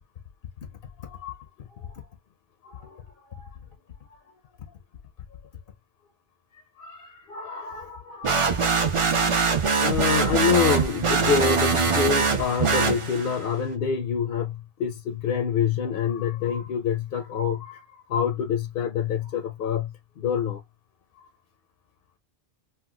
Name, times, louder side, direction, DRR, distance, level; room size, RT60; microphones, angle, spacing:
voice 1, 1.0-2.0 2.6-3.0 3.3-3.5 6.8-9.4 9.8-20.6 21.2-21.3, left 7 dB, 65° left, 0.7 m, -27 dB
sound 1, 8.2-13.4, right 5 dB, 40° right, 0.5 m, -23 dB
4.3 x 2.2 x 2.2 m
omnidirectional pair, 1.1 m